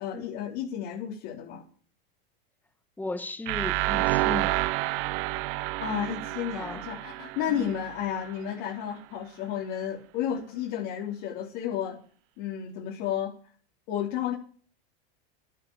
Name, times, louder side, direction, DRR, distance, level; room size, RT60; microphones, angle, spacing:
voice 1, 0.0-1.6 5.8-12.0 12.4-13.4 13.9-14.3, left 9 dB, 55° left, -2 dB, 3.9 m, -32 dB
voice 2, 3.0-4.6 6.5-6.8 7.5-7.8, left 3 dB, 5° left, 9 dB, 1.5 m, -36 dB
sound 1, 3.5-8.3, right 19 dB, 55° right, 1.0 m, -29 dB
11.0 x 11.0 x 7.4 m, 0.43 s
supercardioid pair, 130°, 29 cm